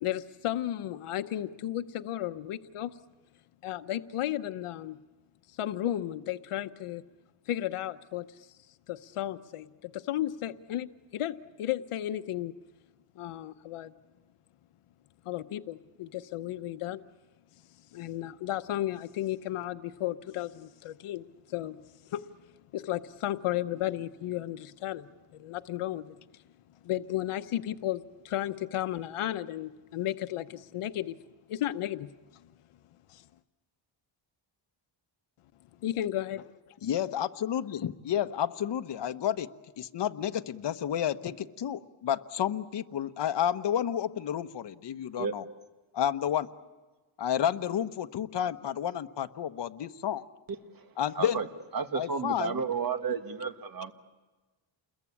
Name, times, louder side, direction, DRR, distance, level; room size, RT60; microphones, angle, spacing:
voice 1, 0.0-3.0 3.6-5.0 5.5-7.0 7.5-8.5 8.9-12.5 13.2-13.9 15.3-17.0 17.9-21.8 22.0-22.3 22.7-26.1 26.8-31.1 31.5-32.1 33.1-33.2 35.8-36.6, left 13 dB, 85° left, 0.9 m, -34 dB
voice 2, 36.8-39.5 39.8-45.4 45.9-46.5 47.2-50.2 51.0-51.4 51.9-52.6, left 10 dB, 55° left, 1.1 m, -31 dB
voice 3, 51.7-53.9, right 6 dB, 45° right, 2.0 m, -32 dB
29.5 x 22.0 x 8.6 m
cardioid pair, 105°, 50 cm